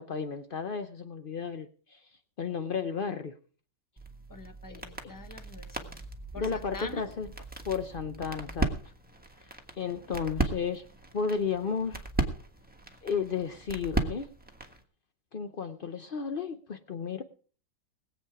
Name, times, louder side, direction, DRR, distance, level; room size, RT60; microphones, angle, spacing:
voice 1, 0.0-2.1 2.4-3.4 4.7-5.2 6.4-7.3 7.7-8.8 9.4-10.8 11.1-12.1 13.0-14.3 15.3-17.2, left 6 dB, 80° left, 9 dB, 0.4 m, -33 dB
sound 1, 4.0-14.8, right 2 dB, 5° right, 1.2 m, -36 dB
voice 2, 4.3-6.0 6.3-7.0, left 3 dB, 15° left, 8 dB, 0.8 m, -45 dB
20.5 x 8.2 x 4.7 m, 0.42 s
omnidirectional pair, 2.1 m